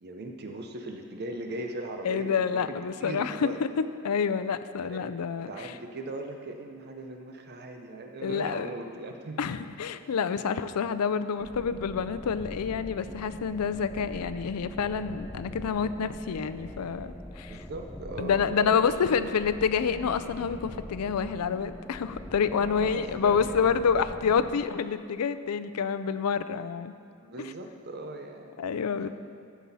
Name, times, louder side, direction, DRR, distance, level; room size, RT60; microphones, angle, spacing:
voice 1, 0.0-3.6 4.8-5.0 5.4-9.5 17.5-18.9 22.6-23.8 27.2-28.6, right 2 dB, 45° right, 4 dB, 0.6 m, -39 dB
voice 2, 2.0-3.5 4.0-5.8 8.2-8.7 9.4-17.7 18.2-26.9 27.4-27.5 28.6-29.1, left 6 dB, 85° left, 12 dB, 0.4 m, -28 dB
sound 1, 11.4-24.7, equal, 5° left, 0.3 m, -43 dB
15.0 x 6.1 x 4.1 m, 2.3 s
head